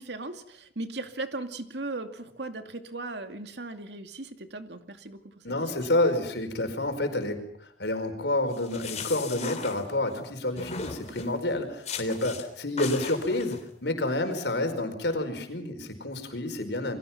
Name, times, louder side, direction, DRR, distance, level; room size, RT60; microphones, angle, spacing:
voice 1, 0.0-5.9, right 2 dB, 75° right, 7 dB, 2.4 m, -38 dB
voice 2, 5.4-17.0, left 2 dB, 75° left, 7 dB, 4.9 m, -29 dB
sound 1, 8.5-10.2 10.6-11.4 11.8-12.5 12.8-13.6, left 5 dB, 40° left, 3.3 m, -38 dB
29.0 x 23.0 x 6.0 m, 0.65 s
head